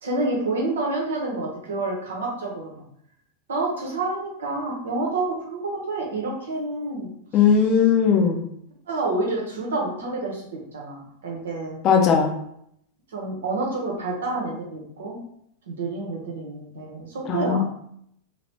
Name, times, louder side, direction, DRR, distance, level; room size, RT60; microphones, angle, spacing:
voice 1, 0.0-2.8 3.5-7.1 8.9-11.8 13.1-15.2 15.7-17.6, right 2 dB, 65° right, -1 dB, 0.9 m, -28 dB
voice 2, 7.3-8.4 11.8-12.3 17.3-17.6, left 6 dB, 35° left, 1 dB, 0.6 m, -18 dB
2.9 x 2.6 x 3.4 m, 0.72 s
figure-of-eight pair, 90°, 0 cm